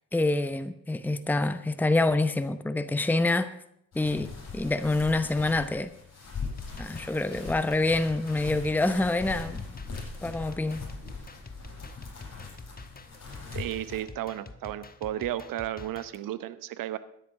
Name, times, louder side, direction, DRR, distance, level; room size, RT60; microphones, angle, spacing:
voice 1, 0.1-3.5 3.9-5.9 6.8-9.6 10.2-10.8, left 2 dB, 5° left, 0.9 m, -26 dB
sound 1, 3.9-14.0, left 4 dB, 40° left, 7.6 m, -41 dB
sound 2, 6.5-16.2, left 3 dB, 25° left, 1.3 m, -47 dB
voice 2, 13.5-17.0, right 13 dB, 60° right, 0.9 m, -33 dB
13.0 x 9.9 x 6.4 m
hypercardioid pair, 50°, 38 cm